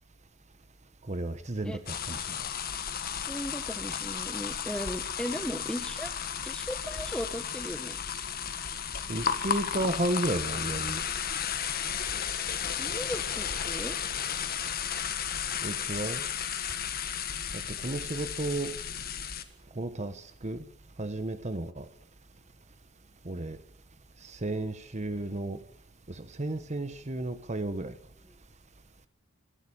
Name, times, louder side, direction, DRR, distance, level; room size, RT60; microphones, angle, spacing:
voice 1, 1.1-2.4 9.1-11.0 15.6-16.2 17.5-18.7 19.7-20.6 21.0-21.9 23.2-23.6 24.2-25.6 26.1-27.9, right 2 dB, 35° right, 1.1 m, -33 dB
sound 1, 1.9-19.4, left 8 dB, 45° left, 1.5 m, -34 dB
voice 2, 3.3-6.1 6.4-8.0 12.8-14.0, equal, 5° left, 1.4 m, -37 dB
24.5 x 12.5 x 8.7 m
head